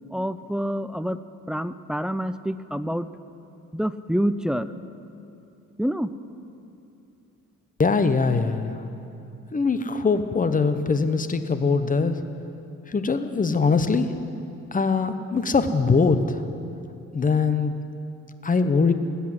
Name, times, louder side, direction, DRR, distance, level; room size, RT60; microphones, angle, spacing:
voice 1, 0.1-1.2 1.5-3.1 3.7-4.7 5.8-6.1, equal, ahead, 13 dB, 0.4 m, -27 dB
voice 2, 7.8-8.8 9.5-12.2 12.9-14.1 14.7-16.4 17.1-17.7 18.4-18.9, left 4 dB, 25° left, 10 dB, 1.0 m, -22 dB
19.5 x 8.5 x 7.6 m, 2.8 s
cardioid pair, 90°, 30 cm